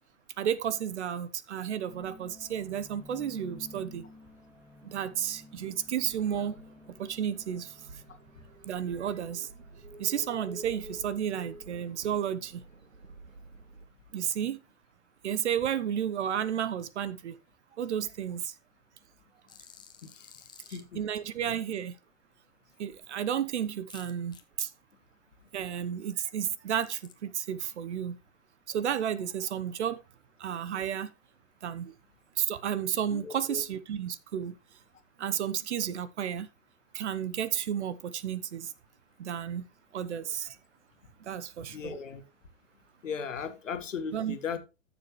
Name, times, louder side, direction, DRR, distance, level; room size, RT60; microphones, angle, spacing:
voice 1, 0.4-4.0 4.8-6.6 7.0-7.7 8.7-9.5 10.0-12.6 14.1-14.6 15.2-17.3 17.8-18.5 20.7-21.9 22.8-24.7 25.5-28.1 28.7-30.0 30.4-31.1 31.6-31.9 32.4-34.6 35.2-36.5 36.9-38.7 39.2-39.6 39.9-40.6 41.3-41.9 44.1-44.4, right 9 dB, 55° right, 1.1 m, -32 dB
sound 1, 1.9-12.1, left 2 dB, 5° right, 3.1 m, -53 dB
sound 2, 5.9-13.8, right 1 dB, 80° right, 2.1 m, -49 dB
sound 3, 19.5-20.8 23.9-24.4 26.7-27.1, left 7 dB, 10° left, 1.2 m, -52 dB
voice 2, 33.1-33.6 41.7-42.2 43.0-44.6, left 6 dB, 65° left, 2.0 m, -37 dB
14.0 x 7.2 x 3.2 m
figure-of-eight pair, 115°, 40 cm